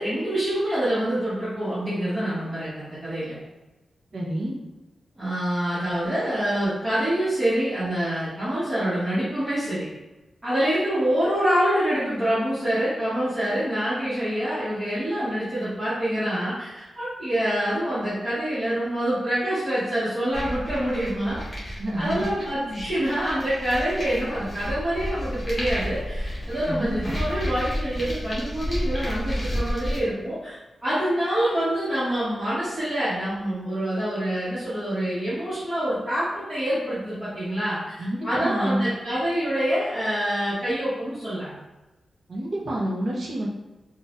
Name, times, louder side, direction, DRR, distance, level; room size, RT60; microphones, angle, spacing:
voice 1, 0.0-3.4 5.2-9.8 10.4-41.6, right 1 dB, 30° right, -14 dB, 1.4 m, -26 dB
voice 2, 4.1-4.6 21.8-22.5 26.7-27.2 38.0-38.9 42.3-43.5, right 1 dB, 60° right, -4 dB, 0.8 m, -28 dB
sound 1, 20.3-30.0, equal, 25° left, 1.0 m, -31 dB
4.0 x 2.5 x 2.6 m, 1.1 s
wide cardioid pair, 125°, 0 cm